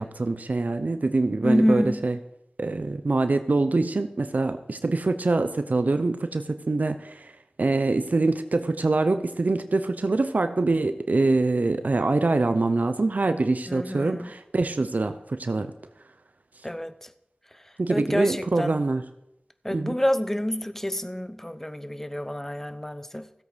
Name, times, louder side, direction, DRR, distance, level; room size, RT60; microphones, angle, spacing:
voice 1, 0.0-2.2 2.6-7.3 7.6-15.7 17.8-19.0 19.7-19.9, right 3 dB, 70° right, 0.8 m, -24 dB
voice 2, 1.4-2.1 13.7-14.3 16.6-17.1 17.9-18.8 19.6-23.3, equal, 10° left, 0.8 m, -27 dB
16.0 x 8.2 x 5.1 m
wide cardioid pair, 40°, 3 cm